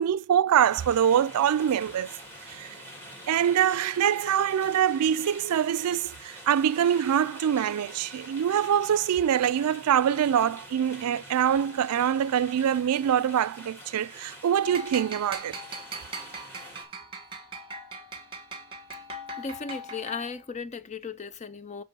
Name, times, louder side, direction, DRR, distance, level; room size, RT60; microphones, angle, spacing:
voice 1, 0.0-2.1 2.5-2.7 3.3-15.6, right 9 dB, 80° right, 0.3 m, -24 dB
sound 1, 0.6-16.8, right 1 dB, 10° left, 2.6 m, -46 dB
sound 2, 14.6-20.4, right 1 dB, 20° right, 1.5 m, -40 dB
voice 2, 19.4-21.8, left 4 dB, 30° left, 0.4 m, -36 dB
8.9 x 3.1 x 6.1 m
head